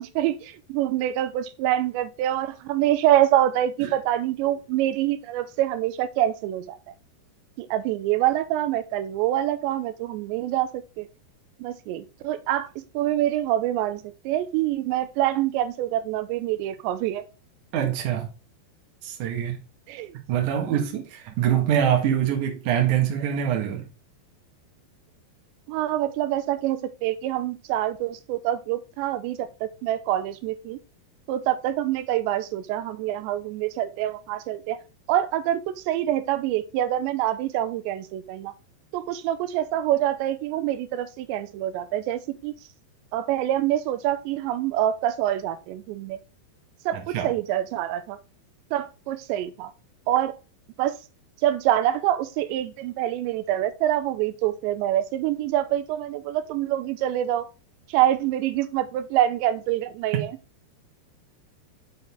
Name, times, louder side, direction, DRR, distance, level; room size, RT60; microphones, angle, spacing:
voice 1, 0.0-6.8 7.6-11.1 11.6-17.2 19.9-20.2 20.5-20.8 25.7-30.8 31.3-34.8 35.1-38.5 38.9-42.5 43.1-46.2 46.9-48.2 48.7-49.7 50.1-50.3 50.8-51.0 51.4-57.5 57.9-60.3, right 12 dB, 90° right, 2.9 m, -26 dB
voice 2, 17.7-18.3 19.0-19.6 20.3-23.9 46.9-47.3, right 9 dB, 60° right, 2.5 m, -24 dB
6.6 x 6.5 x 3.5 m
omnidirectional pair, 5.0 m